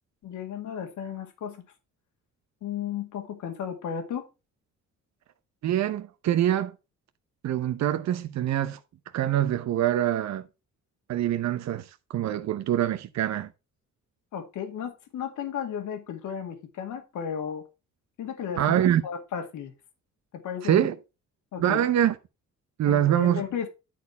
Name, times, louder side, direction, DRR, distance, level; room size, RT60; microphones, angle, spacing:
voice 1, 0.2-1.7 2.6-4.3 14.3-17.6 18.2-18.8 19.0-19.7 20.3-20.9 21.5-21.8 22.8-23.7, left 8 dB, 75° left, 2.0 m, -34 dB
voice 2, 5.6-6.7 7.4-8.8 9.1-10.5 11.1-13.5 18.6-19.0 20.6-20.9 21.6-22.1 22.8-23.4, right 11 dB, 65° right, 0.8 m, -24 dB
10.5 x 4.3 x 5.5 m
cardioid pair, 90°, 30 cm